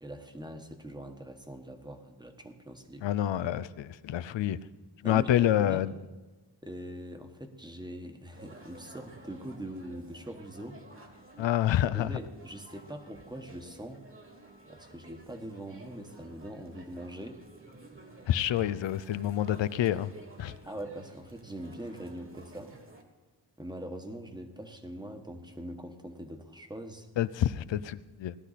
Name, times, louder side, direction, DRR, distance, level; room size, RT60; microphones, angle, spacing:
voice 1, 0.0-3.1 5.0-5.8 6.6-10.8 11.9-14.0 14.7-17.4 20.7-22.8 23.6-27.1, right 1 dB, 10° right, 1.3 m, -42 dB
voice 2, 3.0-4.6 5.0-5.9 11.4-12.1 18.3-20.1 20.4-20.5 27.2-28.4, left 11 dB, 80° left, 0.6 m, -27 dB
sound 1, 8.3-23.0, right 2 dB, 30° right, 1.9 m, -53 dB
17.5 x 11.5 x 4.1 m
wide cardioid pair, 90°, 44 cm